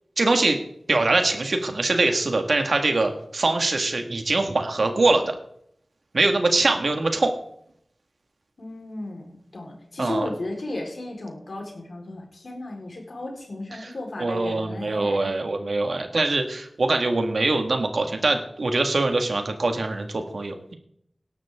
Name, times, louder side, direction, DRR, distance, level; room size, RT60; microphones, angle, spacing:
voice 1, 0.2-0.6 0.9-5.4 6.1-7.3 10.0-10.3 13.8-13.9 14.2-20.7, right 2 dB, 80° right, 5 dB, 2.0 m, -23 dB
voice 2, 8.6-15.3, left 2 dB, 85° left, 0 dB, 4.3 m, -34 dB
18.0 x 12.0 x 3.7 m, 0.72 s
wide cardioid pair, 45°, 0 cm